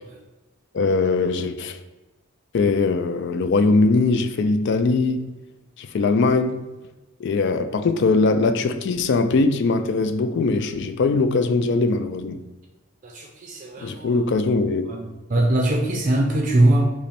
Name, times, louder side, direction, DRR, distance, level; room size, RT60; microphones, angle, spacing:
voice 1, 0.7-1.8 2.5-5.3 5.8-6.7 7.2-12.4 13.8-14.9, left 3 dB, 55° left, 0.3 m, -21 dB
voice 2, 13.0-14.4 14.9-16.9, right 1 dB, 35° right, 0.5 m, -22 dB
5.5 x 2.1 x 4.2 m
head